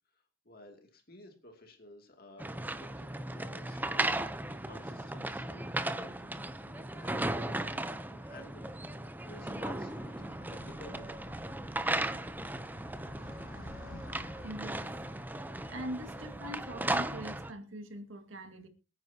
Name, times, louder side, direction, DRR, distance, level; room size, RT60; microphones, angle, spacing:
voice 1, 0.1-11.3, left 1 dB, 50° left, 2.5 m, -54 dB
sound 1, 2.4-17.5, right 1 dB, 10° right, 0.6 m, -36 dB
Animal, 9.2-17.1, left 1 dB, 90° left, 1.7 m, -53 dB
voice 2, 14.4-14.9 15.7-18.7, right 1 dB, 85° right, 2.0 m, -42 dB
24.5 x 9.4 x 2.8 m
head